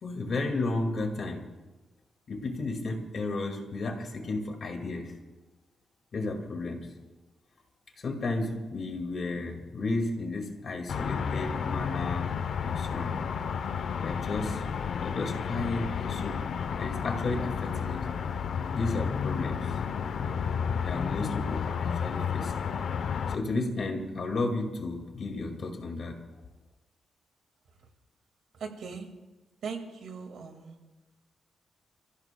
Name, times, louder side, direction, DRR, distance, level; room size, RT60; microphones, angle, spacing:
voice 1, 0.0-1.4 2.3-5.1 6.1-6.9 8.0-12.4 12.6-13.2 14.0-14.6 15.0-16.4 16.8-18.1 18.7-19.8 20.7-22.6 23.3-26.2, left 2 dB, 45° left, 3 dB, 2.0 m, -33 dB
sound 1, 10.9-23.4, left 7 dB, 65° left, 0.7 m, -31 dB
voice 2, 28.6-29.1 29.6-30.8, right 5 dB, 75° right, 4 dB, 2.0 m, -39 dB
29.5 x 15.0 x 2.3 m, 1.2 s
wide cardioid pair, 150°, 0 cm